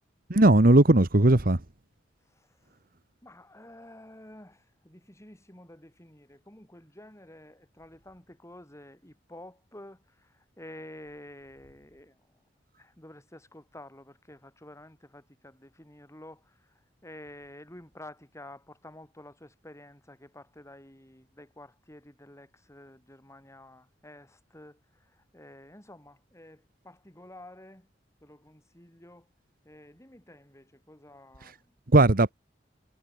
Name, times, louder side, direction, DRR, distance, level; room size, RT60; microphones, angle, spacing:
voice 1, 0.3-1.6 31.9-32.3, right 2 dB, 50° right, 1.5 m, -18 dB
voice 2, 2.3-2.8 3.2-12.4 12.8-27.9 28.2-29.3 29.6-31.8, left 1 dB, 15° left, 7.2 m, -50 dB
head